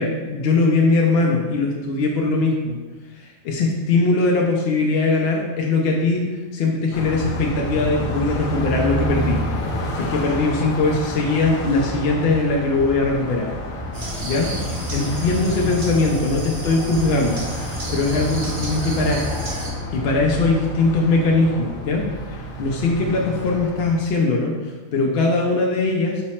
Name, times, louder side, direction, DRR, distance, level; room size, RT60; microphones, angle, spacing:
voice 1, 0.0-2.8 3.2-9.4 9.9-13.5 14.2-14.6 14.9-17.4 17.9-19.2 19.9-26.2, left 3 dB, 65° left, -1 dB, 0.6 m, -21 dB
Car passing by, 6.9-24.1, equal, 85° left, 1.1 m, -29 dB
sound 1, 13.9-19.7, equal, 50° right, 1.0 m, -31 dB
5.5 x 2.0 x 4.2 m, 1.3 s
omnidirectional pair, 1.4 m